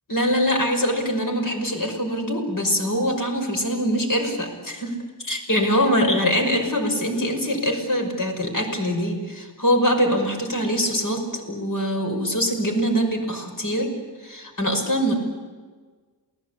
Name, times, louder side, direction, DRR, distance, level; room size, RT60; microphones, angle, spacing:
voice 1, 0.1-14.0 14.2-15.1, equal, 50° left, 3 dB, 5.8 m, -23 dB
28.5 x 19.5 x 8.5 m, 1.4 s
wide cardioid pair, 90°, 43 cm